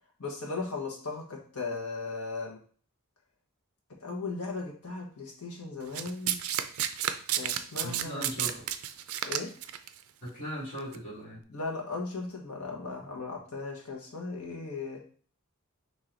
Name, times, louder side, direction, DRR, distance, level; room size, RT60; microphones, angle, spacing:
voice 1, 0.2-2.6 4.0-6.4 7.3-8.5 9.2-9.5 11.5-15.0, left 3 dB, 90° left, 0 dB, 1.3 m, -37 dB
Domestic sounds home sounds, 5.9-9.9 10.8-11.0, right 10 dB, 70° right, 0.4 m, -31 dB
voice 2, 7.8-8.7 10.2-11.4, equal, 40° left, -7 dB, 2.4 m, -38 dB
4.5 x 3.0 x 3.9 m, 0.44 s
head